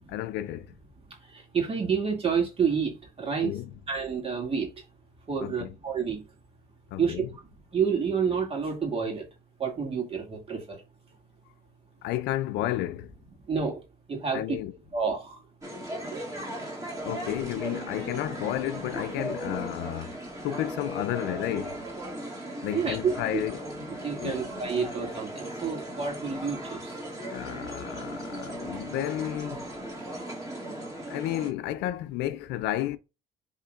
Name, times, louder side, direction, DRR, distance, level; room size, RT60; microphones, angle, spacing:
voice 1, 0.1-0.7 3.4-3.7 5.4-5.8 6.9-7.3 12.0-13.1 14.3-14.7 17.0-20.2 20.4-21.9 22.6-23.7 24.2-24.5 27.3-29.7 31.1-33.0, left 13 dB, 85° left, 0.5 m, -32 dB
voice 2, 1.5-2.9 3.2-3.5 3.9-4.7 5.3-6.2 7.0-7.2 7.7-9.2 9.6-10.6 13.5-13.8 14.1-14.6 14.9-15.4 22.7-23.1 24.0-26.8, right 6 dB, 35° right, 2.3 m, -28 dB
sound 1, 15.6-31.5, right 1 dB, 20° right, 2.3 m, -37 dB
10.5 x 3.6 x 2.4 m
cardioid pair, 110°, 17 cm